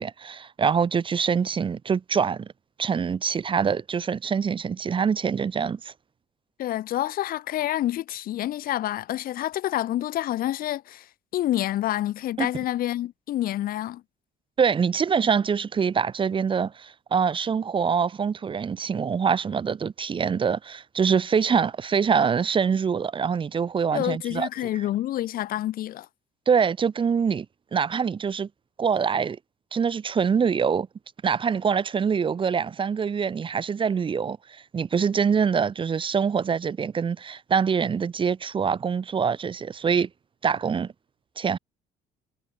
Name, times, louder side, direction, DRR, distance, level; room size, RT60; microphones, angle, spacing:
voice 1, 0.0-2.5 2.8-5.9 12.4-12.5 14.6-24.5 26.5-27.5 27.7-28.5 28.8-29.4 29.7-30.9 31.2-40.1 40.4-40.9 41.4-41.6, right 6 dB, 30° right, 0.8 m, -24 dB
voice 2, 6.6-11.1 11.3-14.0 23.9-26.1, left 13 dB, 60° left, 0.7 m, -28 dB
cardioid pair, 110°, 17 cm